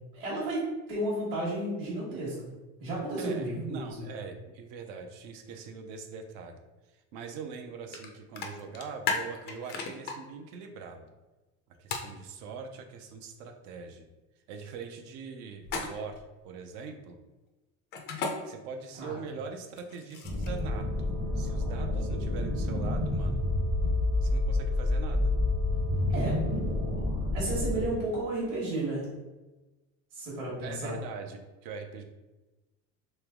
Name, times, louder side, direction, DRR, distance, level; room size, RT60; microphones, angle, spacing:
voice 1, 0.1-2.5 2.8-4.0 19.0-19.2 26.1-26.4 27.3-29.1 30.1-30.9, right 1 dB, 35° right, -7 dB, 1.2 m, -32 dB
voice 2, 3.2-6.6 6.9-11.1 11.8-14.1 14.5-17.2 18.4-23.5 24.2-25.3 30.6-32.0, right 5 dB, 55° right, 5 dB, 0.6 m, -42 dB
sound 1, 7.9-8.1 8.4-10.1 11.9-12.1 15.6-16.2 17.9-18.3 19.7-20.6, left 5 dB, 30° left, 0.4 m, -33 dB
sound 2, 20.2-27.9, left 2 dB, 15° right, 0.7 m, -29 dB
Wind instrument woodwind instrument, 20.4-27.2, right 3 dB, 80° right, 0.8 m, -45 dB
3.2 x 3.0 x 3.6 m, 1.1 s
cardioid pair, 165°, 34 cm